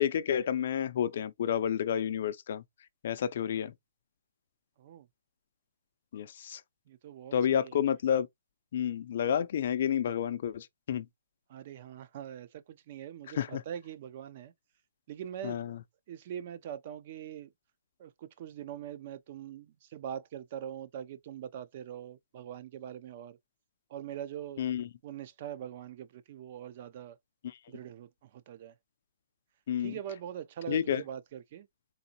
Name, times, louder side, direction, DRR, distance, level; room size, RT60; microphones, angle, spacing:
voice 1, 0.0-2.6 3.0-3.7 6.1-6.6 7.3-8.3 8.7-11.0 13.4-13.6 15.4-15.7 24.6-24.9 29.7-29.9 30.7-31.0, left 9 dB, 50° left, 0.4 m, -30 dB
voice 2, 6.9-7.8 11.5-14.5 15.1-15.8 16.1-17.5 18.0-23.4 23.9-24.6 25.0-27.2 27.7-28.7 29.8-31.7, right 9 dB, 40° right, 0.4 m, -43 dB
3.9 x 2.5 x 2.8 m
hypercardioid pair, 160°, 0 cm